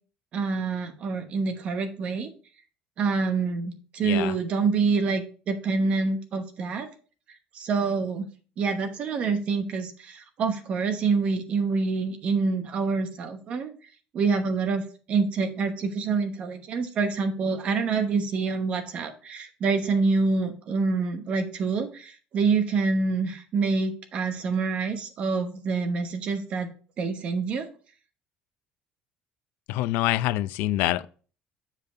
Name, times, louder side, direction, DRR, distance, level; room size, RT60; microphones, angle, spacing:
voice 1, 0.3-2.3 3.0-6.9 7.5-8.3 8.6-13.7 14.1-27.7, right 4 dB, 40° right, 1.0 m, -26 dB
voice 2, 29.7-31.1, left 15 dB, 90° left, 0.5 m, -25 dB
7.5 x 5.3 x 4.2 m
cardioid pair, 180°, 3 cm